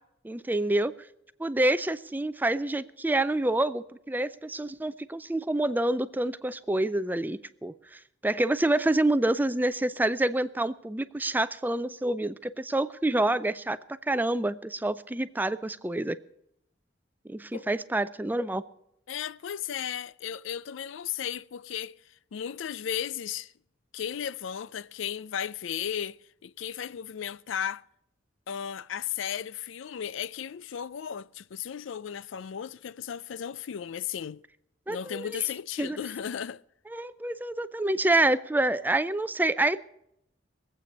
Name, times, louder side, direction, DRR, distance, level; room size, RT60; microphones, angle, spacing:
voice 1, 0.2-0.9 1.4-13.8 14.1-16.2 17.3-18.6 34.9-35.4 35.8-36.0 36.9-39.9, right 1 dB, 10° right, 0.4 m, -27 dB
voice 2, 19.1-22.0 22.3-23.5 23.9-27.9 28.5-34.4 34.9-36.6, left 9 dB, 85° left, 0.4 m, -35 dB
22.0 x 8.4 x 5.2 m
head